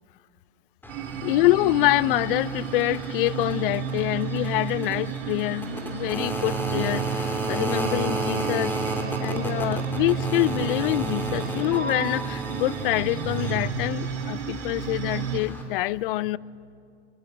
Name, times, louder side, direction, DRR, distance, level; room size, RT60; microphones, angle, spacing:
sound 1, 0.8-15.6, right 2 dB, 5° left, 3.0 m, -32 dB
sound 2, 0.9-15.4, right 8 dB, 50° right, 1.9 m, -32 dB
voice 1, 1.2-7.0 7.5-8.7 9.2-16.4, left 17 dB, 45° left, 0.5 m, -25 dB
22.5 x 21.0 x 7.8 m
hypercardioid pair, 125°, 37 cm